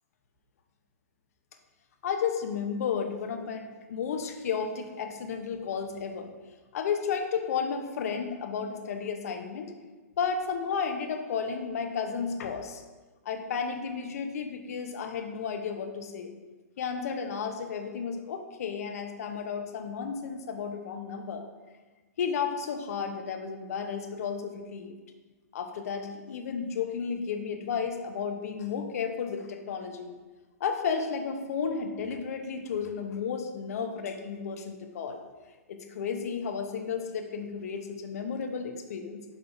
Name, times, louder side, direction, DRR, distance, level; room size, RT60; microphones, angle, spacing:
voice 1, 2.0-6.3 6.7-9.7 10.2-12.8 13.2-16.3 16.8-21.5 22.2-24.9 25.5-30.1 30.6-35.2 35.7-39.2, left 6 dB, 65° left, 5 dB, 0.8 m, -33 dB
5.6 x 3.7 x 4.5 m, 1.3 s
hypercardioid pair, 120°, 9 cm